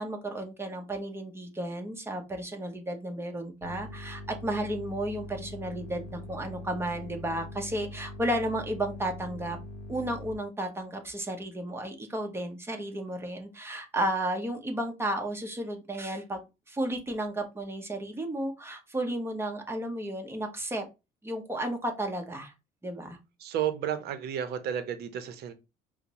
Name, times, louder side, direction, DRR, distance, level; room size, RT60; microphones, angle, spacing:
voice 1, 0.0-9.6 9.9-20.9 21.2-22.5 22.8-23.2, right 1 dB, 15° right, 0.8 m, -33 dB
sound 1, 3.6-10.4, left 1 dB, 90° left, 0.6 m, -42 dB
voice 2, 23.4-25.5, right 9 dB, 70° right, 0.6 m, -32 dB
4.9 x 2.0 x 2.8 m
cardioid pair, 110°, 17 cm